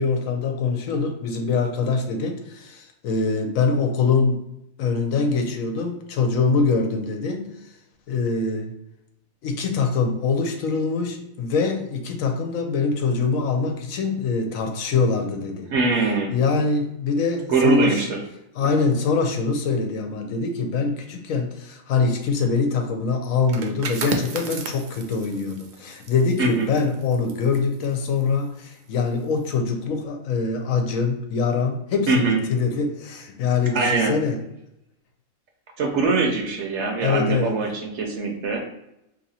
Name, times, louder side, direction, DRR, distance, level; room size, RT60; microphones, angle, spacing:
voice 1, 0.0-4.5 4.8-7.5 8.1-8.7 9.4-15.7 16.3-18.1 18.6-34.4 37.0-37.6, left 4 dB, 75° left, 4 dB, 1.0 m, -24 dB
voice 2, 15.7-16.3 17.5-18.2 26.4-26.7 32.1-32.4 33.7-34.1 35.8-38.6, right 4 dB, 60° right, 2 dB, 0.9 m, -22 dB
sound 1, 23.4-28.9 29.2-29.5, right 5 dB, 90° right, 0.4 m, -34 dB
2.8 x 2.8 x 4.1 m, 0.86 s
omnidirectional pair, 1.4 m